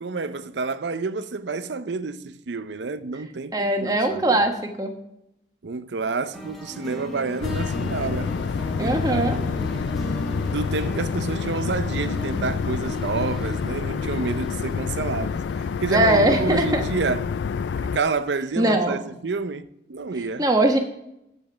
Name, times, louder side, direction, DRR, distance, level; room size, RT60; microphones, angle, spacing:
voice 1, 0.0-4.4 5.6-8.3 8.8-9.9 10.4-20.5, right 4 dB, 90° right, 0.6 m, -29 dB
voice 2, 3.5-4.9 8.8-9.4 15.9-16.8 18.6-19.0 20.4-20.8, right 1 dB, 20° right, 1.2 m, -21 dB
sound 1, 6.3-17.8, right 1 dB, ahead, 1.6 m, -38 dB
sound 2, 7.4-18.0, left 5 dB, 90° left, 0.3 m, -28 dB
14.5 x 5.2 x 6.0 m
head